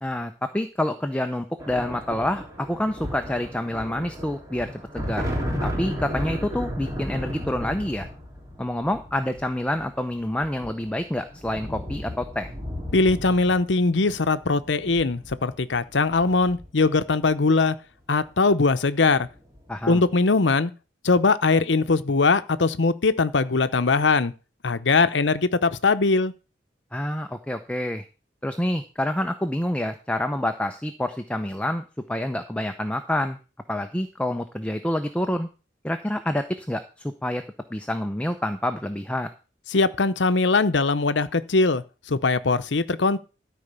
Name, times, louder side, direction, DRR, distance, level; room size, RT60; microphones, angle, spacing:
voice 1, 0.0-5.3 5.6-8.1 8.6-12.5 19.7-20.0 26.9-28.0 28.4-31.8 32.1-33.4 33.7-35.5 35.8-37.4 37.7-39.3, left 1 dB, 5° left, 0.7 m, -27 dB
sound 1, 1.6-17.3 18.5-18.7 19.0-19.7, equal, 20° right, 3.2 m, -35 dB
voice 2, 12.9-17.8 18.1-19.3 19.9-20.7 21.0-24.3 24.6-26.3 39.7-43.2, left 3 dB, 75° left, 0.8 m, -21 dB
13.0 x 5.0 x 6.8 m
head